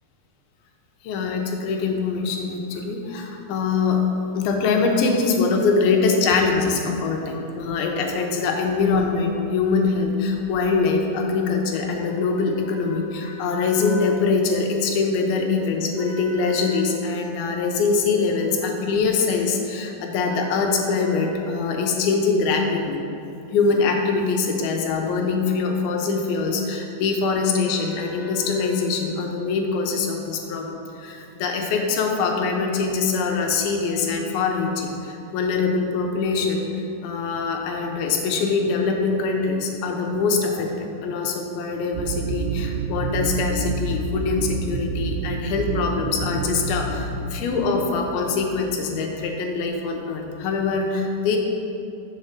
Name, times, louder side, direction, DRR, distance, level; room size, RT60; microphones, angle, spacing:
voice 1, 1.0-4.0 4.3-23.0 23.5-51.4, left 4 dB, 85° left, 1 dB, 2.6 m, -23 dB
sound 1, 41.9-48.7, right 3 dB, 90° right, 1.9 m, -28 dB
6.5 x 4.4 x 6.2 m, 2.8 s
omnidirectional pair, 4.3 m